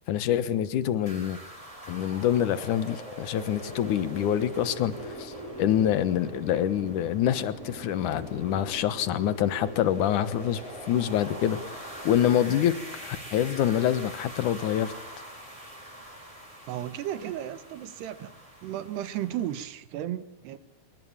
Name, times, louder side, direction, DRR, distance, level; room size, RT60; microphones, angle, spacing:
voice 1, 0.1-1.4 1.9-11.6 12.0-12.8 13.0-14.9, left 10 dB, 65° left, 14 dB, 2.3 m, -26 dB
sound 1, 1.1-19.6, equal, 10° right, 5.8 m, -42 dB
voice 2, 16.7-18.3 18.6-20.6, right 11 dB, 85° right, 14 dB, 3.4 m, -34 dB
27.0 x 23.0 x 8.8 m, 0.83 s
omnidirectional pair, 4.7 m